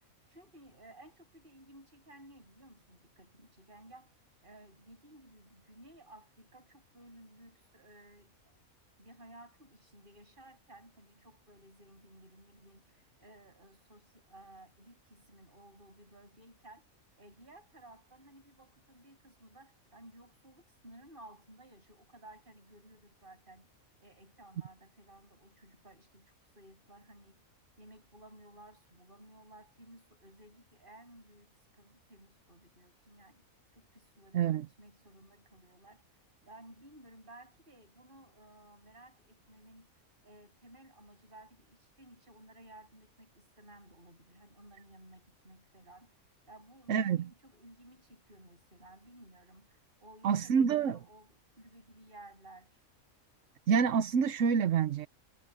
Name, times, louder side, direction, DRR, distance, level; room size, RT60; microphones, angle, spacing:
voice 1, 0.0-4.1 4.4-8.5 9.0-16.9 17.2-23.7 24.0-27.4 27.8-33.4 33.7-36.0 36.4-39.9 40.2-46.1 46.5-52.8, right 1 dB, 35° right, 8.0 m, -56 dB
voice 2, 34.3-34.7 46.9-47.2 50.2-51.0 53.7-55.1, right 7 dB, 60° right, 1.1 m, -27 dB
omnidirectional pair, 1.5 m